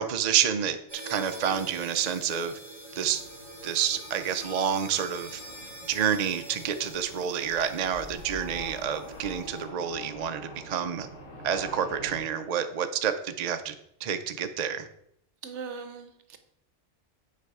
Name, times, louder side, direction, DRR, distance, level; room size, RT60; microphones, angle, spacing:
voice 1, 0.0-2.6 3.0-3.2 3.6-5.4 5.9-11.1 11.4-13.7 14.0-14.9, right 8 dB, 45° right, 8 dB, 0.6 m, -29 dB
sound 1, 0.9-9.7, right 1 dB, 20° right, 2.2 m, -45 dB
sound 2, 3.0-12.2, left 1 dB, 80° left, 2.4 m, -46 dB
voice 2, 15.4-16.4, right 5 dB, 75° right, 9 dB, 1.1 m, -39 dB
8.2 x 5.0 x 4.7 m, 0.74 s
omnidirectional pair, 1.2 m